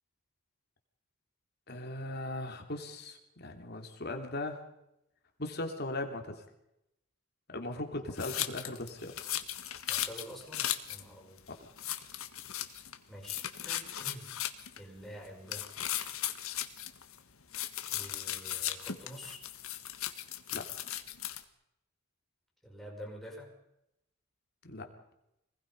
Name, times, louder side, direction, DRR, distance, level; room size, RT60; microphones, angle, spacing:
voice 1, 1.7-4.6 5.4-6.4 7.5-9.2 20.5-20.7 24.6-24.9, left 2 dB, 50° left, 4 dB, 3.1 m, -38 dB
sound 1, 8.2-11.0 11.4-11.5 11.8-13.0 13.2-14.8 15.5-17.2 17.5-21.4, left 12 dB, 75° left, 1.6 m, -37 dB
voice 2, 9.9-11.4 13.1-14.3 14.8-15.7 17.9-19.4 22.6-23.5, equal, ahead, -2 dB, 5.7 m, -48 dB
26.0 x 20.5 x 5.5 m, 0.83 s
head